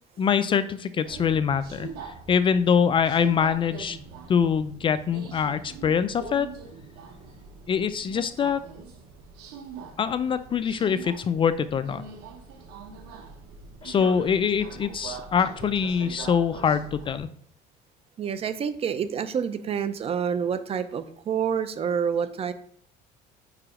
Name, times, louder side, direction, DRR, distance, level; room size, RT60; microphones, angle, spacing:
voice 1, 0.2-4.0 4.3-6.5 7.7-8.6 10.0-12.0 13.8-17.3, left 7 dB, 30° left, 12 dB, 0.4 m, -24 dB
Subway metro underground, 1.0-17.2, right 5 dB, 85° right, 1.1 m, -43 dB
voice 2, 18.2-22.5, right 7 dB, 35° right, 12 dB, 0.5 m, -28 dB
4.9 x 4.9 x 4.8 m, 0.64 s
cardioid pair, 125°, 17 cm